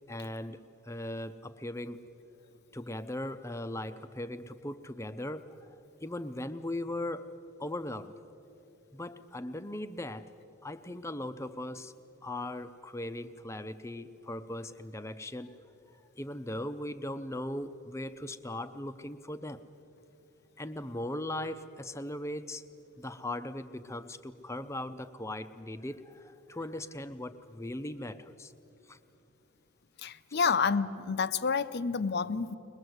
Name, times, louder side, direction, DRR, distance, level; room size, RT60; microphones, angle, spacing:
voice 1, 0.1-2.0 2.7-7.3 7.6-8.1 8.9-10.3 10.6-11.9 12.2-15.5 15.9-19.6 20.6-22.6 23.0-28.5 28.9-29.0 30.3-30.5, left 1 dB, 15° left, 10 dB, 0.6 m, -39 dB
voice 2, 30.0-32.6, left 5 dB, 50° left, 13 dB, 0.6 m, -29 dB
22.0 x 21.5 x 7.9 m, 2.9 s
head